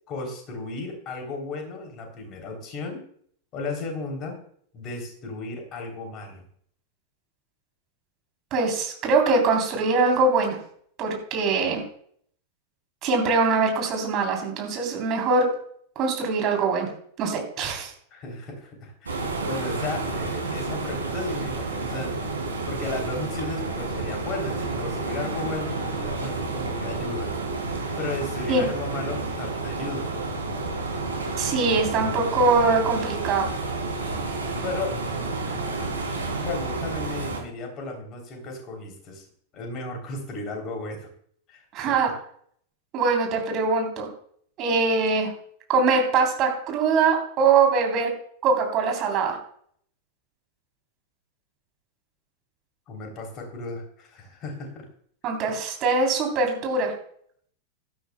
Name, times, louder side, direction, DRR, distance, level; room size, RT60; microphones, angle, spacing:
voice 1, 0.1-3.0 3.5-4.4 4.7-6.5 18.1-22.3 22.6-27.3 28.0-30.1 34.1-34.3 34.6-35.9 36.4-39.2 39.5-41.1 41.5-42.0 52.9-54.9, left 2 dB, 35° left, 3 dB, 3.3 m, -35 dB
voice 2, 8.5-10.6 11.0-11.8 13.0-15.5 16.0-16.9 17.2-17.9 28.5-28.6 31.4-33.5 41.7-42.1 42.9-44.1 44.6-45.3 45.7-48.1 48.4-49.4 55.2-56.9, right 4 dB, 35° right, 1 dB, 3.5 m, -22 dB
sound 1, 19.1-37.4, right 3 dB, 75° right, 3.1 m, -30 dB
16.5 x 12.5 x 2.3 m, 0.62 s
figure-of-eight pair, 90°, 0 cm